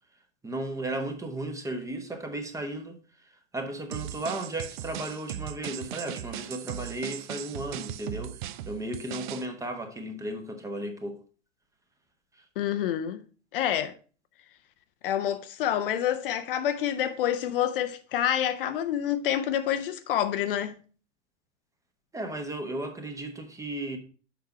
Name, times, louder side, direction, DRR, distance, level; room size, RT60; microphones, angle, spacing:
voice 1, 0.4-11.2 12.3-12.4 22.1-24.0, right 1 dB, 10° right, 0.9 m, -35 dB
sound 1, 3.9-9.5, right 12 dB, 45° right, 0.5 m, -38 dB
voice 2, 12.6-13.2 13.5-13.9 15.0-20.7, left 10 dB, 50° left, 0.6 m, -27 dB
6.8 x 4.7 x 4.6 m
figure-of-eight pair, 90°, 34 cm